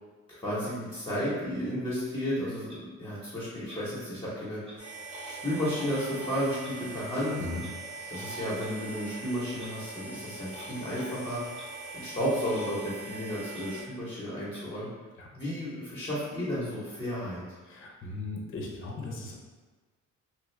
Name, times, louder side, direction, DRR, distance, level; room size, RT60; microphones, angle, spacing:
voice 1, 0.3-4.8 5.2-7.4 8.1-11.4 11.9-14.9 15.3-17.4, equal, 15° left, -9 dB, 1.0 m, -33 dB
Clock, 2.7-2.8 3.6-3.9 4.6-4.8 5.6-5.8 6.6-6.8 7.6-7.8 8.5-8.7 9.5-9.7 10.5-10.7 11.5-11.7 12.0-12.1 12.5-12.7 13.1-13.2 13.5-13.7 14.5-14.7, left 1 dB, 20° right, 0.9 m, -50 dB
sound 1, 4.8-13.8, right 3 dB, 60° right, 1.4 m, -42 dB
voice 2, 17.6-19.3, left 2 dB, 45° left, -1 dB, 0.7 m, -38 dB
3.1 x 2.4 x 3.1 m, 1.3 s
cardioid pair, 90°, 30 cm